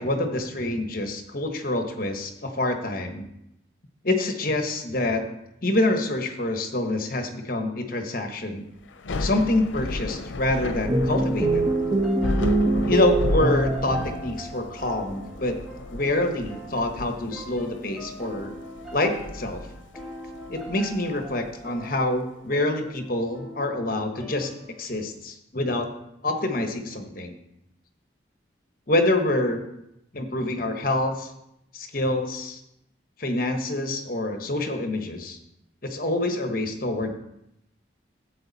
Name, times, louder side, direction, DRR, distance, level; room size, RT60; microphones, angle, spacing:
voice 1, 0.0-3.2 4.0-5.2 5.6-8.6 9.2-11.7 12.9-15.6 15.9-18.5 18.9-19.7 20.5-24.5 24.8-25.9 26.2-27.4 28.9-29.6 30.1-31.3 31.7-32.6 33.2-35.4 35.8-37.2, left 1 dB, 50° left, 5 dB, 1.3 m, -26 dB
Thunder / Rain, 8.9-22.1, left 2 dB, 90° left, 0.6 m, -34 dB
sound 1, 10.9-14.6, right 2 dB, 35° right, 1.1 m, -24 dB
sound 2, 11.4-25.1, equal, ahead, 2.5 m, -43 dB
13.0 x 8.2 x 4.1 m, 0.83 s
head